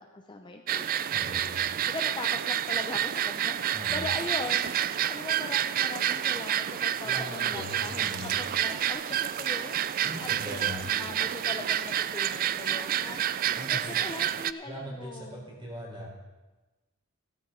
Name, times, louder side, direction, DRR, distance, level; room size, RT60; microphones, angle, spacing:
voice 1, 0.0-1.4 1.9-3.6 3.9-4.7 5.1-9.8 10.2-13.2 13.6-15.5, left 2 dB, 20° left, 4 dB, 0.6 m, -40 dB
sound 1, 0.7-14.5, right 10 dB, 40° right, 0.3 m, -29 dB
voice 2, 1.1-1.6 3.7-4.1 6.9-8.3 10.0-10.9 13.5-13.9 14.6-16.1, equal, 25° right, -2 dB, 4.0 m, -40 dB
sound 2, 6.9-13.9, left 1 dB, ahead, 3.2 m, -54 dB
15.0 x 13.0 x 3.8 m, 1.1 s
head